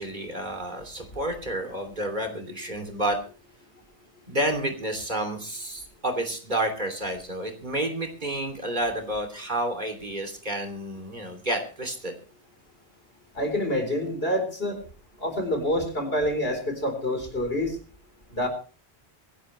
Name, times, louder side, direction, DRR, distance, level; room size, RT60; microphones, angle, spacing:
voice 1, 0.0-3.2 4.3-12.1, right 1 dB, 45° right, 6 dB, 3.2 m, -30 dB
voice 2, 13.4-14.8 15.2-17.8 18.3-18.5, left 1 dB, 65° left, 5 dB, 4.3 m, -27 dB
24.5 x 11.5 x 3.2 m, 0.39 s
omnidirectional pair, 1.1 m